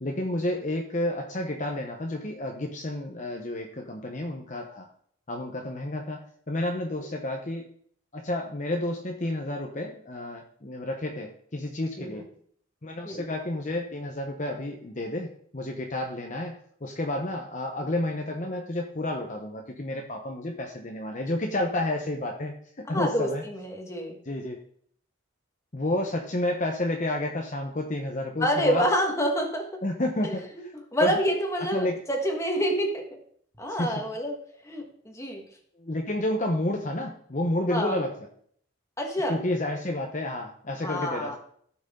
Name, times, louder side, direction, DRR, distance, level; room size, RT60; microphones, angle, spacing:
voice 1, 0.0-4.9 5.3-7.6 8.1-12.3 12.8-23.4 24.3-24.6 25.7-28.9 29.8-30.4 31.0-31.1 31.7-31.9 33.8-34.0 35.8-38.2 39.3-41.4, left 1 dB, 40° left, 2 dB, 0.9 m, -30 dB
voice 2, 22.9-24.2 28.4-29.8 30.2-30.4 30.9-33.2 33.6-34.4 34.6-35.4 37.7-38.0 39.0-39.4 40.8-41.4, equal, 15° left, 2 dB, 1.6 m, -27 dB
15.5 x 6.1 x 3.8 m, 0.62 s
head